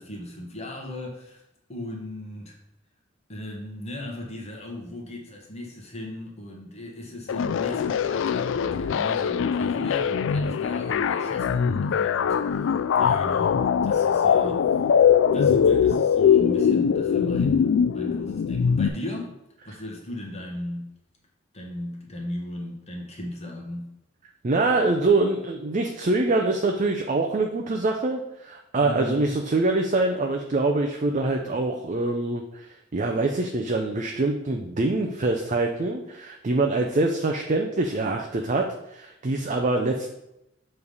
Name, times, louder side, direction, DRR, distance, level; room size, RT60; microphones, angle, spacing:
voice 1, 0.0-1.4 1.7-2.5 3.3-12.7 13.0-14.9 15.3-19.3 19.6-20.9 21.5-23.9 28.8-29.4, left 1 dB, 35° left, -1 dB, 1.3 m, -36 dB
sound 1, 7.3-18.9, left 7 dB, 70° left, 0.3 m, -22 dB
voice 2, 24.4-32.7 32.9-38.7 38.9-40.1, right 2 dB, 40° right, 3 dB, 0.5 m, -24 dB
7.0 x 3.3 x 5.4 m, 0.85 s
head